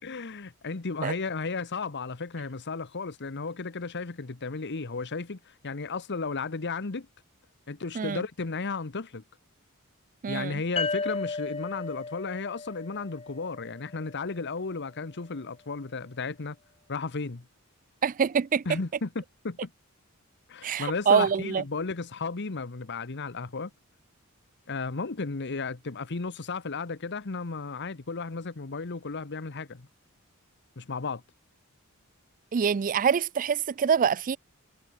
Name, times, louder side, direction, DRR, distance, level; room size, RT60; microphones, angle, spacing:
voice 1, 0.0-7.1 7.7-9.2 10.3-16.6 16.9-17.5 18.7-19.7 20.5-23.7 24.7-29.9 30.8-31.2, left 4 dB, 55° left, 1.0 m, -34 dB
voice 2, 10.2-10.6 18.0-18.6 20.6-21.6 32.5-34.4, right 7 dB, 40° right, 0.4 m, -25 dB
sound 1, 10.8-14.2, left 4 dB, 30° left, 2.9 m, -35 dB
head